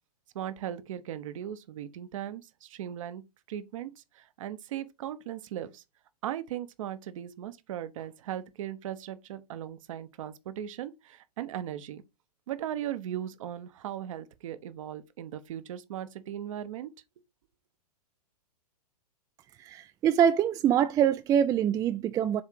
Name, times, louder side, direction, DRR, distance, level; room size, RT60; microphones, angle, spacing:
voice 1, 0.3-3.2 3.5-5.8 6.2-12.0 12.5-16.9, right 11 dB, 55° right, 1.0 m, -38 dB
voice 2, 19.6-22.4, right 9 dB, 15° right, 0.4 m, -24 dB
7.3 x 3.7 x 4.6 m
figure-of-eight pair, 110°, 20 cm